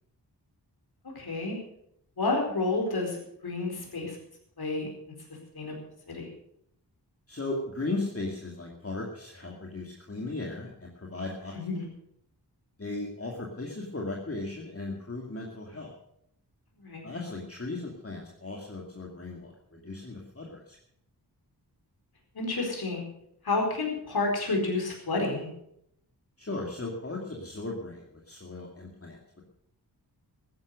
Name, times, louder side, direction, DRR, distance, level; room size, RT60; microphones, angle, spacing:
voice 1, 1.1-1.6 2.2-4.2 4.6-4.9 5.5-5.8 6.1-6.3 11.5-11.9 16.8-17.0 22.3-23.1 23.4-25.5, left 3 dB, 60° left, 1 dB, 4.7 m, -30 dB
voice 2, 7.3-11.5 12.8-15.9 17.0-20.8 26.4-29.4, left 2 dB, 35° left, -1 dB, 2.6 m, -37 dB
14.0 x 10.5 x 6.6 m, 0.73 s
cardioid pair, 60°, 41 cm